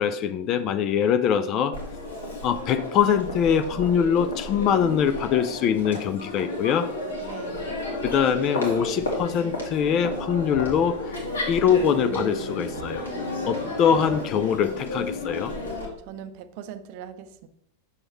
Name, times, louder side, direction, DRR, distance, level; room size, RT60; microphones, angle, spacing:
voice 1, 0.0-1.8 2.4-6.9 8.0-11.0 11.5-13.1 13.5-15.5, left 8 dB, 35° left, 11 dB, 0.4 m, -23 dB
Crowd, 1.7-15.8, left 2 dB, 70° left, 2.0 m, -32 dB
voice 2, 7.2-7.7 13.5-13.7 16.0-17.5, right 8 dB, 45° right, 11 dB, 0.5 m, -40 dB
7.1 x 6.2 x 3.1 m, 0.75 s
figure-of-eight pair, 90°, 0 cm